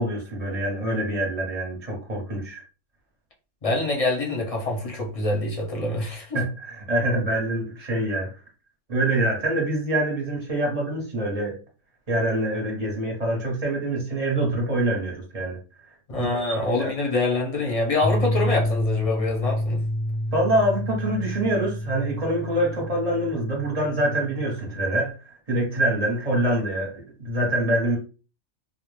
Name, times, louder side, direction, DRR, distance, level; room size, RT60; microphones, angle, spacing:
voice 1, 0.0-2.6 6.3-8.3 8.9-11.5 12.1-15.6 16.1-16.3 16.6-16.9 20.3-28.0, right 1 dB, 35° right, 0.8 m, -25 dB
voice 2, 3.6-6.4 16.1-19.8, left 2 dB, 40° left, 0.6 m, -25 dB
sound 1, 18.0-25.1, equal, 85° left, 1.1 m, -28 dB
2.3 x 2.1 x 3.1 m
omnidirectional pair, 1.3 m